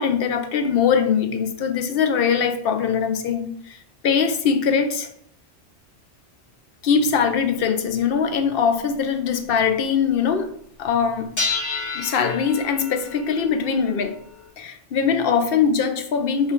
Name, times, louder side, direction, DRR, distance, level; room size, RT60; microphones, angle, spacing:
voice 1, 0.0-5.1 6.8-10.5 10.8-11.3 11.9-14.2 14.6-16.5, left 6 dB, 60° left, 7 dB, 0.7 m, -22 dB
sound 1, 7.0-7.1 8.0-8.1 8.6-8.7 9.1-9.4 11.4-14.5, left 3 dB, 20° left, 0.6 m, -30 dB
5.1 x 2.3 x 4.3 m, 0.64 s
omnidirectional pair, 1.2 m